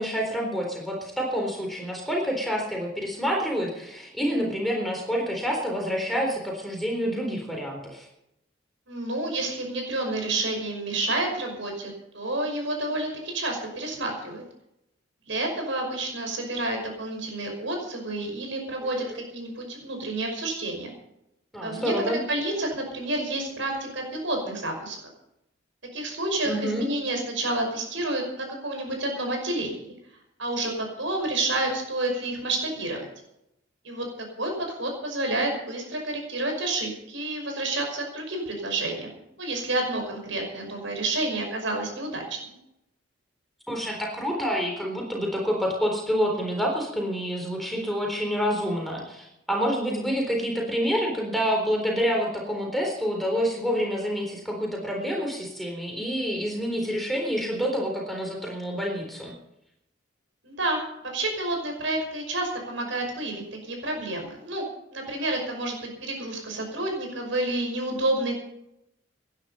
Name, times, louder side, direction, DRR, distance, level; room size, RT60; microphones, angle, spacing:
voice 1, 0.0-8.1 19.1-19.2 21.5-22.2 26.4-26.9 43.7-59.3, equal, ahead, -1 dB, 4.0 m, -28 dB
voice 2, 8.9-14.4 15.3-20.9 21.6-25.0 25.9-29.9 30.4-33.0 33.8-34.1 34.4-39.1 39.4-42.4 60.4-60.8 61.1-68.3, right 2 dB, 70° right, 2 dB, 5.7 m, -29 dB
19.0 x 10.5 x 5.7 m, 0.81 s
head